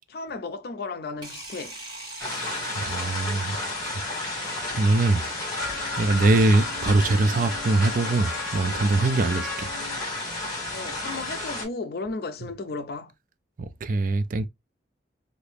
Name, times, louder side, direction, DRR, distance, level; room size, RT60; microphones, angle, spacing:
voice 1, 0.1-1.8 6.2-6.4 9.3-9.5 10.7-13.1, left 3 dB, 60° left, 0.5 m, -34 dB
sound 1, 1.2-4.1, right 1 dB, 25° right, 1.6 m, -41 dB
sound 2, 2.2-11.6, left 2 dB, 25° left, 1.7 m, -32 dB
voice 2, 2.7-3.6 3.8-5.3 5.6-9.7 13.6-14.5, right 2 dB, 50° right, 0.4 m, -23 dB
Wind instrument woodwind instrument, 5.5-10.0, left 4 dB, ahead, 1.3 m, -38 dB
2.8 x 2.6 x 3.3 m
head